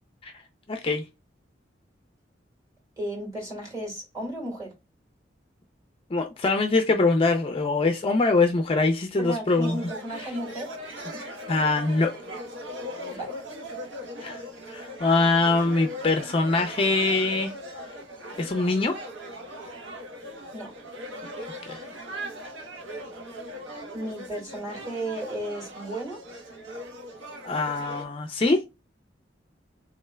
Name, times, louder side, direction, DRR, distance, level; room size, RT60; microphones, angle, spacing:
voice 1, 0.7-1.0 6.1-9.8 11.5-12.1 14.2-14.4 14.7-17.5 18.4-19.0 21.7-21.8 27.4-28.6, left 3 dB, 30° left, 0.4 m, -23 dB
voice 2, 3.0-4.7 9.2-10.7 11.1-11.2 13.1-13.3 20.5-20.7 23.9-26.2, right 1 dB, 15° right, 2.0 m, -34 dB
sound 1, 9.4-28.0, equal, 85° right, 1.0 m, -39 dB
3.7 x 3.2 x 2.2 m
head